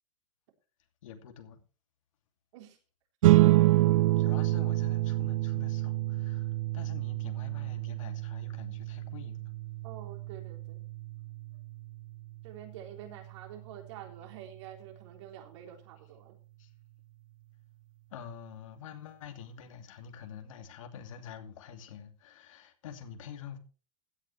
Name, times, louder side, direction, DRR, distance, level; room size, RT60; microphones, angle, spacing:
voice 1, 1.0-1.6 4.2-9.5 16.6-16.7 18.1-23.6, left 8 dB, 80° left, 2.6 m, -47 dB
sound 1, 3.2-14.0, right 17 dB, 85° right, 0.6 m, -28 dB
voice 2, 9.8-10.8 12.4-16.4, right 10 dB, 65° right, 3.8 m, -47 dB
16.0 x 10.0 x 3.4 m
supercardioid pair, 150°, 17 cm